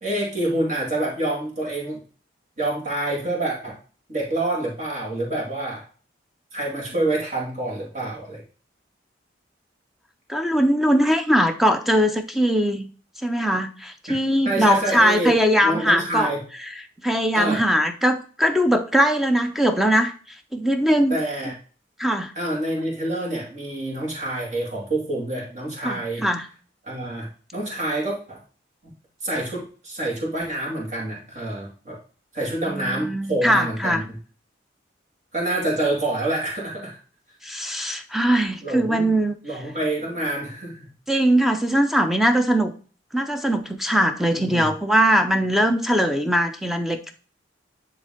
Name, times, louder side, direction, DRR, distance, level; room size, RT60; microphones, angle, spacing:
voice 1, 0.0-2.0 2.6-3.8 4.1-5.8 6.5-8.4 14.4-15.3 15.6-16.4 17.3-17.6 21.1-21.5 22.4-26.2 26.8-28.4 29.2-32.0 32.3-34.1 35.3-37.0 38.6-39.1 39.4-40.9 44.4-44.7, right 1 dB, 40° right, -3 dB, 2.2 m, -27 dB
voice 2, 10.3-12.9 13.2-16.3 17.0-21.2 22.0-22.3 25.8-26.5 32.7-34.0 37.4-39.3 41.1-42.7 43.1-47.1, equal, ahead, 7 dB, 0.5 m, -21 dB
9.9 x 3.4 x 3.7 m, 0.40 s
head